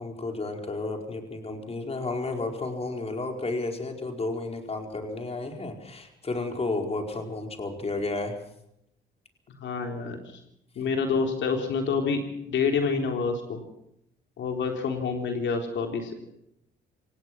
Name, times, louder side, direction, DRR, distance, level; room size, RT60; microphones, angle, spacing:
voice 1, 0.0-8.4, left 2 dB, 30° left, 3 dB, 4.7 m, -32 dB
voice 2, 9.6-10.4 10.8-13.6 14.4-16.1, left 5 dB, 70° left, 3 dB, 3.7 m, -28 dB
27.0 x 18.0 x 6.1 m, 0.78 s
cardioid pair, 90°, 20 cm